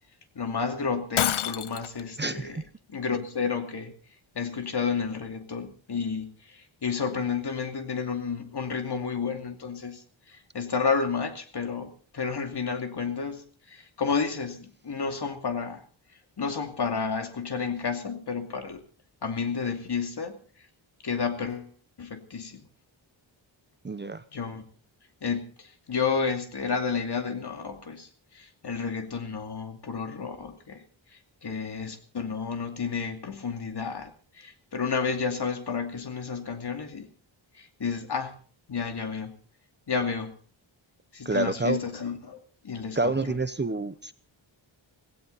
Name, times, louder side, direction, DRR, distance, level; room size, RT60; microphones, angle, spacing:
voice 1, 0.3-2.6 2.9-3.9 4.3-15.8 16.4-18.8 19.2-20.4 21.0-21.7 22.0-22.6 24.3-24.7 25.2-30.8 31.1-37.1 37.5-38.3 38.7-39.3 39.9-40.3 41.1-43.4, left 5 dB, 55° left, 6 dB, 2.5 m, -31 dB
Shatter, 1.2-2.0, left 11 dB, 90° left, 0.8 m, -27 dB
voice 2, 2.2-2.6 23.8-24.2 41.2-41.8 43.0-44.1, right 3 dB, 25° right, 12 dB, 0.8 m, -28 dB
17.0 x 17.0 x 4.0 m, 0.41 s
wide cardioid pair, 100°, 47 cm